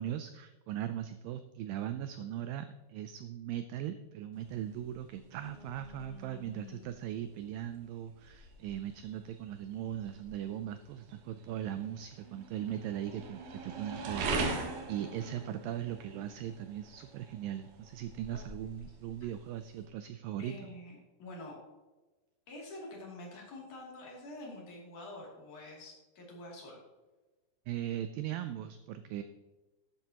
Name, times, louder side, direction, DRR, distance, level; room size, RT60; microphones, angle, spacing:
voice 1, 0.0-20.7 27.7-29.2, right 11 dB, 85° right, 10 dB, 2.0 m, -39 dB
sound 1, 4.3-19.9, right 3 dB, 65° right, 2.6 m, -43 dB
voice 2, 5.4-6.9 15.0-15.7 18.3-18.4 20.4-21.6 22.5-26.8, left 2 dB, 55° left, -3 dB, 3.9 m, -48 dB
12.5 x 9.2 x 2.9 m, 1.2 s
omnidirectional pair, 4.6 m